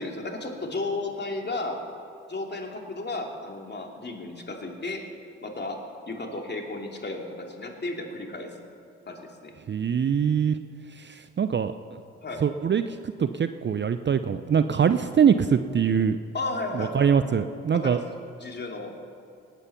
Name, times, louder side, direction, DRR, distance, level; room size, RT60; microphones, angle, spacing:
voice 1, 0.0-1.8 2.3-5.0 5.4-5.8 6.1-8.5 9.1-9.5 12.2-12.4 16.3-17.1 17.7-18.1 18.4-18.9, left 2 dB, 30° left, 2 dB, 2.7 m, -33 dB
voice 2, 9.7-10.6 11.0-12.0 12.4-16.2 16.7-18.0, right 7 dB, 35° right, 10 dB, 0.6 m, -23 dB
19.0 x 9.0 x 5.9 m, 2.6 s
hypercardioid pair, 45°, 33 cm